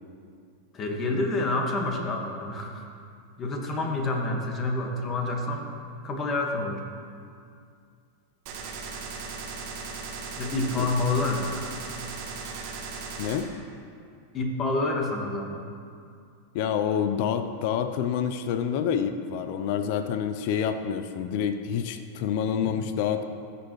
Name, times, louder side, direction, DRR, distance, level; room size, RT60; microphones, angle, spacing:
voice 1, 0.7-2.8 3.4-5.7 6.0-6.8 10.4-11.5 14.3-15.6 22.6-22.7, left 2 dB, 30° left, 2 dB, 1.6 m, -28 dB
Gunshot gunfire, 8.5-13.5, right 4 dB, 55° right, 1.4 m, -37 dB
voice 2, 13.2-13.5 16.5-23.2, left 8 dB, 55° left, 8 dB, 0.5 m, -27 dB
15.0 x 6.9 x 3.2 m, 2.3 s
hypercardioid pair, 95°, 0 cm